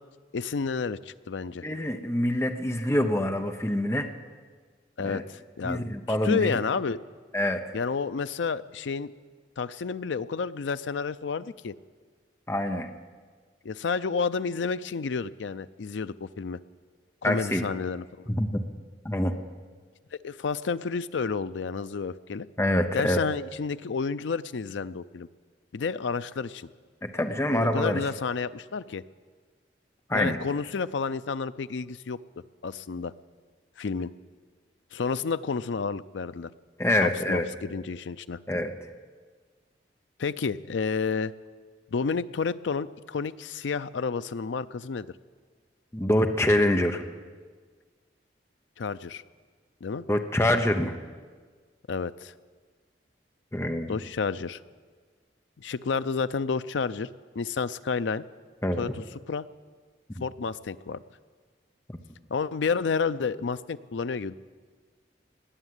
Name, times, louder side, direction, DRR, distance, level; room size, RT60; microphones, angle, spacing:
voice 1, 0.3-1.7 5.0-5.8 6.1-7.0 7.7-9.1 9.6-11.7 13.6-16.6 17.2-18.3 20.2-22.5 22.9-25.3 25.7-26.7 27.5-29.0 30.1-32.2 32.6-33.1 33.8-34.1 34.9-36.5 37.0-38.4 40.2-41.3 41.9-45.1 48.8-49.2 49.8-50.0 51.9-52.3 53.9-54.6 55.6-57.1 57.4-58.2 58.8-59.5 60.2-61.0 62.3-64.4, left 5 dB, 90° left, 14 dB, 0.5 m, -30 dB
voice 2, 1.6-4.1 5.0-5.2 5.6-6.6 7.3-7.6 12.5-12.9 17.2-17.7 18.3-18.6 19.0-19.4 22.6-23.2 27.0-28.0 30.1-30.4 36.8-37.5 38.5-38.7 45.9-47.0 50.1-51.0 53.5-53.9 58.6-58.8 60.2-60.3, left 1 dB, 15° left, 6 dB, 0.8 m, -25 dB
19.0 x 7.3 x 9.5 m, 1.5 s
head